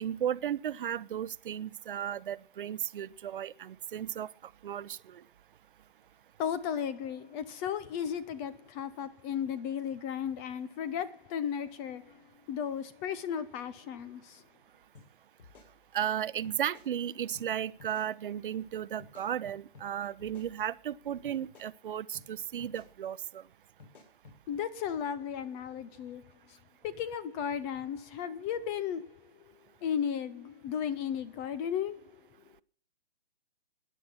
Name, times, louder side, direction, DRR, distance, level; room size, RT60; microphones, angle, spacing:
voice 1, 0.0-4.3 4.6-5.2 15.9-23.4, right 10 dB, 55° right, 0.8 m, -35 dB
voice 2, 6.4-14.4 24.5-26.6 26.8-29.5 29.8-32.2, left 8 dB, 15° left, 0.6 m, -35 dB
sound 1, 14.9-15.1 15.4-16.1 16.4-16.9 17.3-17.5 17.8-18.1 19.0-19.9 20.2-20.9 21.2-21.7 22.1-22.3 22.6-22.9 23.8-24.4, left 4 dB, 55° left, 6.8 m, -55 dB
16.5 x 10.5 x 5.7 m
hypercardioid pair, 145°, 31 cm